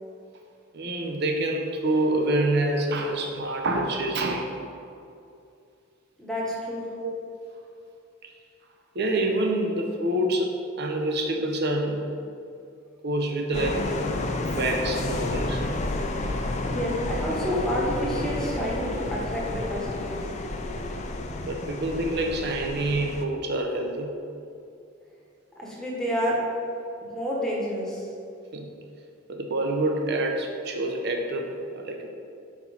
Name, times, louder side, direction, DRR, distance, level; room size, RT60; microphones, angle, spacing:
voice 1, 0.7-4.6 7.0-7.1 8.9-12.1 13.0-13.9 14.5-15.6 21.4-24.2 28.5-28.7 29.3-32.1, right 1 dB, 55° right, 2 dB, 0.7 m, -27 dB
voice 2, 6.2-6.9 16.6-20.2 25.5-26.4 27.1-28.1, equal, 5° left, -5 dB, 1.1 m, -29 dB
sound 1, 13.5-23.2, left 2 dB, 35° left, 0.4 m, -30 dB
4.4 x 4.3 x 5.5 m, 2.5 s
head